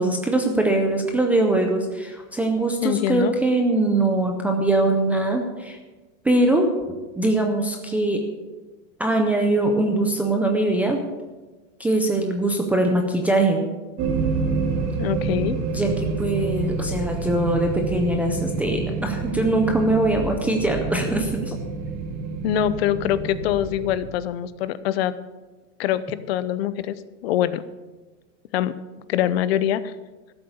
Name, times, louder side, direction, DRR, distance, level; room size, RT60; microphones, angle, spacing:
voice 1, 0.0-5.8 6.2-6.7 7.2-8.2 9.0-11.0 11.8-13.7 15.7-21.6, right 2 dB, 5° right, 3 dB, 0.4 m, -22 dB
voice 2, 2.8-3.3 15.0-15.6 22.4-25.1 25.8-27.0 27.2-27.6 28.5-28.7 29.1-29.9, left 11 dB, 55° left, 15 dB, 0.7 m, -24 dB
sound 1, 14.0-24.0, right 4 dB, 40° right, 1.7 m, -28 dB
13.5 x 7.9 x 7.1 m, 1.2 s
supercardioid pair, 165°, 38 cm